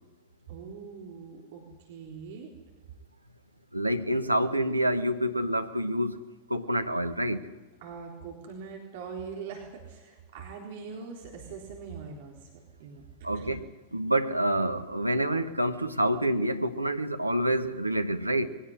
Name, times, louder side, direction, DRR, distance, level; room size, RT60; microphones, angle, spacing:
voice 1, 0.5-2.5 7.8-13.0 13.3-13.6, right 5 dB, 55° right, 1 dB, 3.9 m, -42 dB
voice 2, 3.7-6.2 6.5-7.5 13.2-13.6 13.9-18.5, right 1 dB, 85° right, 7 dB, 1.1 m, -27 dB
22.0 x 17.0 x 10.0 m, 1.2 s
figure-of-eight pair, 90°, 0 cm